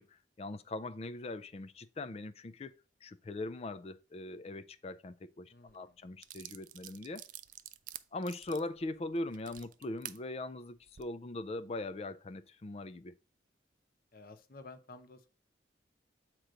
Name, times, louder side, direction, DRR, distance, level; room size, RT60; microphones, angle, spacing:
voice 1, 0.0-2.7 3.0-7.3 8.1-13.1, left 2 dB, 35° left, 0.4 m, -41 dB
voice 2, 5.5-6.0 14.1-15.3, left 3 dB, 55° left, 0.8 m, -53 dB
sound 1, 5.7-5.8 6.2-10.2 10.8-11.0, right 13 dB, 45° right, 0.3 m, -48 dB
7.8 x 3.0 x 4.9 m
head